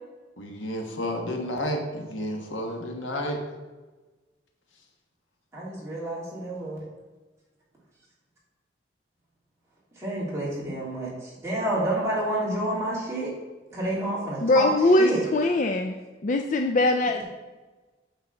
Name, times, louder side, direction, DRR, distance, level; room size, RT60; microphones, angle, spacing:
voice 1, 0.4-3.4, left 1 dB, 90° left, 2 dB, 1.5 m, -31 dB
voice 2, 5.5-6.8 10.0-13.3 13.7-14.7 15.0-15.2, right 1 dB, 15° right, -7 dB, 2.9 m, -29 dB
voice 3, 14.4-15.9 16.2-17.2, left 2 dB, 40° left, 4 dB, 0.4 m, -21 dB
9.0 x 4.1 x 6.8 m, 1.2 s
head